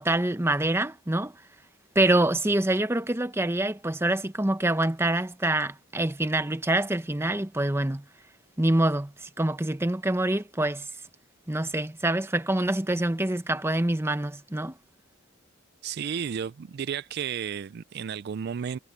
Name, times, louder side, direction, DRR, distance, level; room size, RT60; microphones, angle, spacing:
voice 1, 0.0-1.3 1.9-8.0 8.6-10.9 11.5-14.7, right 1 dB, 10° right, 0.9 m, -26 dB
voice 2, 15.8-18.8, right 7 dB, 55° right, 0.4 m, -33 dB
head